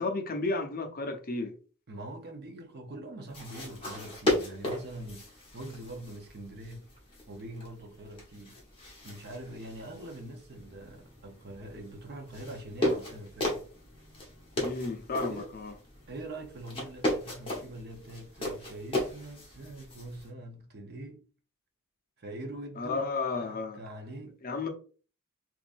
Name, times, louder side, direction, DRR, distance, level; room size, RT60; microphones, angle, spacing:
voice 1, 0.0-1.5 14.6-15.7 22.8-23.8 24.4-24.7, left 3 dB, 40° left, 0.7 m, -33 dB
voice 2, 1.9-6.9 7.3-8.6 9.0-13.6 15.3-15.6 16.1-21.3 22.2-24.4, right 1 dB, 50° right, 0.8 m, -43 dB
sound 1, 3.3-20.3, left 1 dB, 25° left, 1.1 m, -36 dB
3.6 x 3.0 x 2.5 m
head